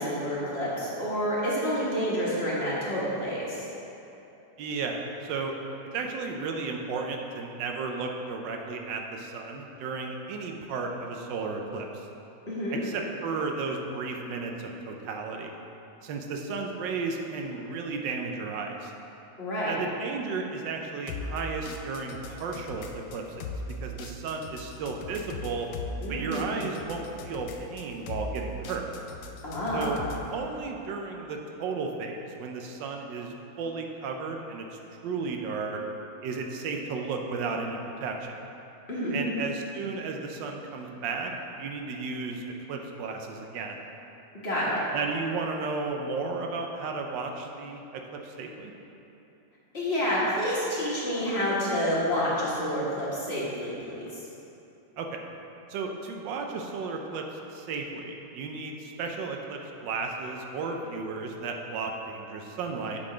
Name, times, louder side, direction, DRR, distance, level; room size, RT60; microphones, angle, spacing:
voice 1, 0.0-3.7 12.5-12.8 19.4-19.8 26.0-26.7 29.4-30.0 38.9-39.3 44.4-44.8 49.7-54.2, equal, 40° left, -7 dB, 1.5 m, -29 dB
voice 2, 4.6-5.5 5.9-12.1 12.7-15.5 16.0-18.9 19.7-23.5 23.8-25.7 26.1-28.9 29.7-30.0 30.3-35.8 36.2-38.4 39.1-43.8 44.9-48.7 55.0-55.2 55.7-63.0, right 4 dB, 85° right, 2 dB, 1.3 m, -34 dB
sound 1, 21.1-30.3, left 2 dB, 75° left, 1.2 m, -39 dB
8.5 x 3.8 x 4.9 m, 2.9 s
omnidirectional pair, 1.9 m